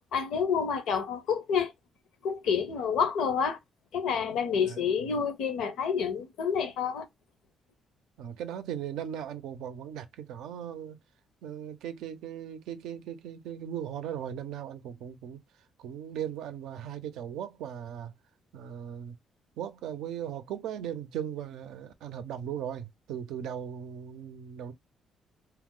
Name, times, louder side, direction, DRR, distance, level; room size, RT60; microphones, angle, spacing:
voice 1, 0.1-1.7 2.2-3.6 3.9-7.1, left 6 dB, 85° left, 0.7 m, -28 dB
voice 2, 8.2-11.0 11.4-15.4 15.8-18.1 18.5-19.2 19.6-24.7, right 9 dB, 85° right, 0.5 m, -38 dB
2.8 x 2.0 x 3.6 m
cardioid pair, 90°, 0 cm